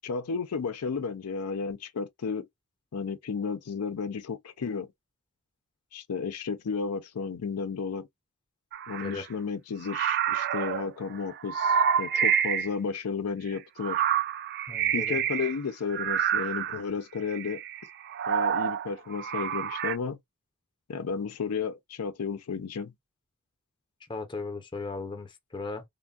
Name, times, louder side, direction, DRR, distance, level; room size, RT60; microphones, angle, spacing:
voice 1, 0.0-2.4 2.9-4.9 5.9-8.1 8.9-14.0 14.9-17.6 18.3-20.2 20.9-22.9, left 5 dB, 80° left, 0.5 m, -33 dB
sound 1, 8.7-9.2 9.9-12.7 13.6-15.6 15.9-16.8 17.3-20.0, right 8 dB, 45° right, 0.3 m, -28 dB
voice 2, 14.7-15.2 24.1-25.8, left 3 dB, 20° left, 0.6 m, -37 dB
3.4 x 2.1 x 2.3 m
head